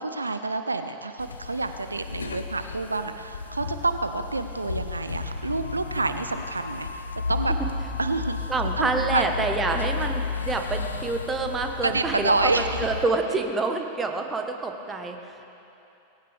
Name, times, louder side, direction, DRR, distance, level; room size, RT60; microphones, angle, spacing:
voice 1, 0.0-7.0 7.3-7.5 8.0-8.4 8.8-9.2 11.8-12.7, right 3 dB, 80° right, 9 dB, 0.5 m, -28 dB
sound 1, 1.2-13.1, left 4 dB, 75° left, 0.7 m, -33 dB
voice 2, 8.5-15.5, right 3 dB, 15° right, 4 dB, 1.2 m, -27 dB
18.5 x 16.0 x 3.4 m, 2.9 s
figure-of-eight pair, 90°, 0 cm